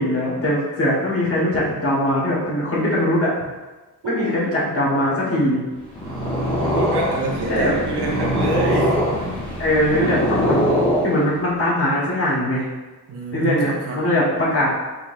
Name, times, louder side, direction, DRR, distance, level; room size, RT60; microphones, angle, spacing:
voice 1, 0.0-3.3 4.0-5.6 7.5-7.7 9.6-10.6 11.0-12.6 13.3-14.7, left 1 dB, 35° left, -7 dB, 1.5 m, -21 dB
Purr, 5.8-11.5, equal, 10° left, 1.3 m, -22 dB
voice 2, 6.7-8.9 13.1-14.1, right 2 dB, 75° right, -2 dB, 0.9 m, -26 dB
4.6 x 4.0 x 2.6 m, 1.2 s
wide cardioid pair, 130°, 40 cm